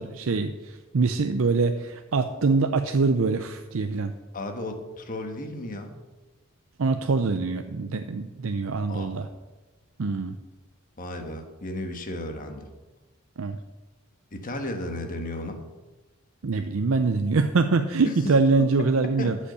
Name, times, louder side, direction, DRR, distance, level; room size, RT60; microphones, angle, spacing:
voice 1, 0.0-4.1 6.8-9.3 10.0-10.4 13.4-13.6 16.4-19.4, right 4 dB, 70° right, 8 dB, 0.5 m, -24 dB
voice 2, 4.3-6.0 8.9-9.2 11.0-12.7 14.3-15.6 18.0-18.2 18.6-19.4, left 1 dB, 40° left, 5 dB, 1.4 m, -34 dB
13.0 x 5.4 x 6.8 m, 1.2 s
head